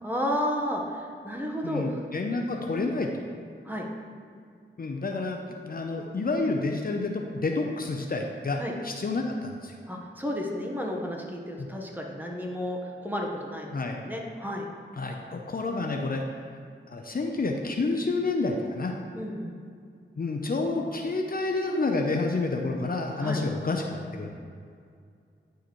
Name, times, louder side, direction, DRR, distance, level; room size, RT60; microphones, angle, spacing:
voice 1, 0.0-2.0 3.6-3.9 8.6-8.7 9.9-14.6 19.1-19.6 23.2-23.4, equal, 10° right, 0 dB, 1.2 m, -32 dB
voice 2, 1.6-3.1 4.8-5.4 5.7-9.7 13.7-14.0 15.0-16.2 16.9-18.9 20.2-24.4, left 3 dB, 45° left, 2 dB, 0.7 m, -29 dB
10.0 x 4.6 x 3.1 m, 2.3 s
cardioid pair, 50°, 21 cm